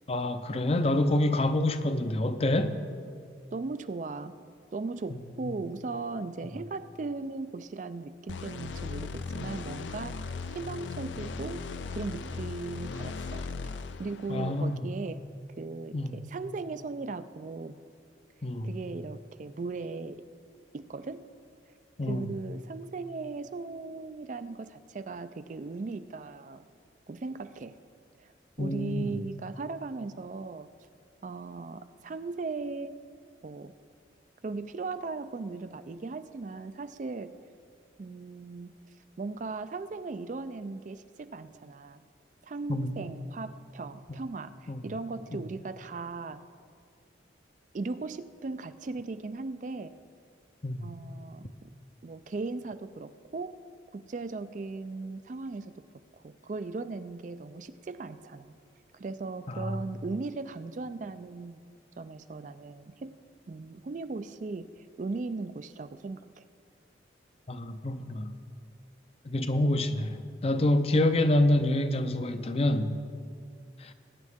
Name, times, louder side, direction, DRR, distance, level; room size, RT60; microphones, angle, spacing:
voice 1, 0.1-2.8 5.4-5.5 14.3-14.8 15.9-16.2 18.4-18.7 22.0-22.3 28.6-29.1 42.7-42.9 44.1-44.2 44.7-44.8 50.6-50.8 59.5-59.8 67.5-68.3 69.3-72.9 73.8-73.9, left 1 dB, 30° left, 0.5 m, -27 dB
voice 2, 3.5-4.3 4.7-10.2 10.5-11.6 11.9-13.7 14.0-15.2 15.6-17.8 18.6-20.2 20.7-21.3 22.0-26.7 27.1-27.8 28.2-28.3 28.6-30.7 31.2-33.0 33.4-33.7 34.4-37.3 38.0-38.8 39.2-42.0 42.4-46.4 47.7-49.9 50.8-51.7 52.0-53.5 53.9-55.7 56.2-58.6 58.9-61.6 62.0-63.1 63.5-64.7 65.0-66.4, right 3 dB, 40° right, 0.4 m, -38 dB
sound 1, 8.3-14.7, left 4 dB, 75° left, 0.5 m, -38 dB
20.5 x 9.5 x 3.6 m
head